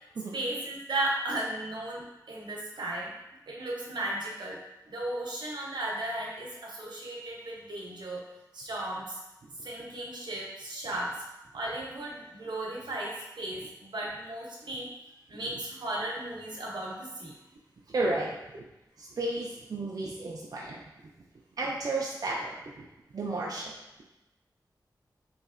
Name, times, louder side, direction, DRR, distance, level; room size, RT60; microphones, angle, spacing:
voice 1, 0.3-3.1 3.5-4.6 4.9-8.2 8.5-9.2 9.6-11.2 11.5-14.9 15.3-17.3, right 1 dB, 85° right, -4 dB, 0.7 m, -35 dB
voice 2, 17.9-18.3 19.0-20.8 21.6-22.8 23.1-23.7, right 2 dB, 55° right, -4 dB, 0.4 m, -32 dB
3.1 x 2.7 x 2.5 m, 0.94 s
wide cardioid pair, 115°, 7 cm